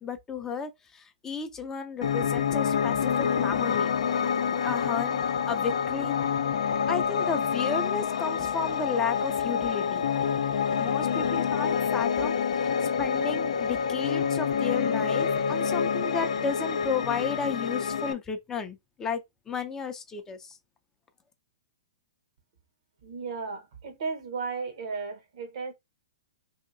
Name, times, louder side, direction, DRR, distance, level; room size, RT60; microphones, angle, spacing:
voice 1, 0.0-3.9 4.6-5.2 5.5-6.1 6.9-10.0 10.8-12.7 13.0-19.2 19.5-20.6, left 5 dB, 15° left, 0.5 m, -33 dB
Piano, 2.0-18.1, left 7 dB, 75° left, 0.5 m, -27 dB
voice 2, 23.0-25.7, right 4 dB, 65° right, 1.0 m, -35 dB
2.8 x 2.8 x 2.6 m
hypercardioid pair, 135°, 3 cm